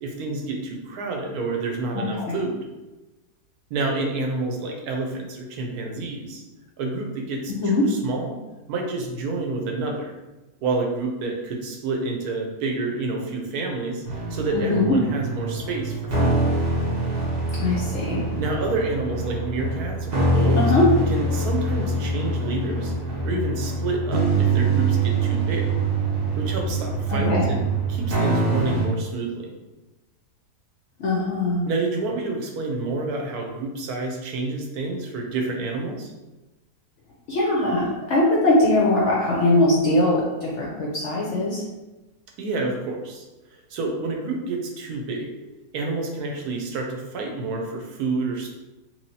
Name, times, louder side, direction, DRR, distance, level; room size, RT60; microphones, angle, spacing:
voice 1, 0.0-2.6 3.7-6.4 6.8-8.4 8.7-10.1 10.6-16.4 18.3-20.6 21.1-22.9 23.2-25.7 26.4-27.6 27.9-29.5 31.6-36.1 42.4-43.2 43.7-45.3 45.7-48.5, right 3 dB, 75° right, 1 dB, 1.1 m, -28 dB
voice 2, 1.9-2.4 7.5-7.8 14.5-14.9 17.6-18.2 20.5-20.8 27.1-27.5 31.0-31.6 37.3-41.6, left 2 dB, 65° left, -4 dB, 0.7 m, -21 dB
sound 1, 14.0-28.9, right 2 dB, 45° right, 0.8 m, -24 dB
3.1 x 3.0 x 2.6 m, 1.1 s
omnidirectional pair, 1.7 m